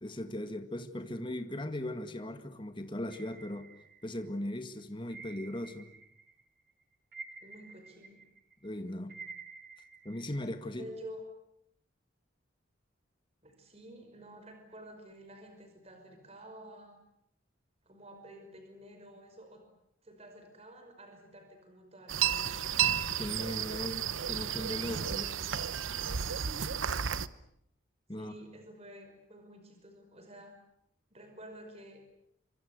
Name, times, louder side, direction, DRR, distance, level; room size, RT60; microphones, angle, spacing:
voice 1, 0.0-3.7 4.0-5.9 8.6-9.2 10.0-10.8 23.2-25.4 28.1-28.3, left 1 dB, 25° left, 7 dB, 1.9 m, -38 dB
sound 1, 3.1-4.4 5.1-6.4 6.7-10.4, right 4 dB, 50° right, 1.9 m, -50 dB
voice 2, 7.4-8.2 10.7-11.3 13.4-17.0 17.8-19.7 20.0-22.6 23.7-24.1 26.4-27.0 28.2-30.6 31.1-32.2, right 1 dB, 30° right, 5 dB, 5.5 m, -50 dB
sound 2, 22.1-27.3, right 8 dB, 80° right, 1.0 m, -32 dB
27.5 x 25.0 x 8.1 m, 0.75 s
head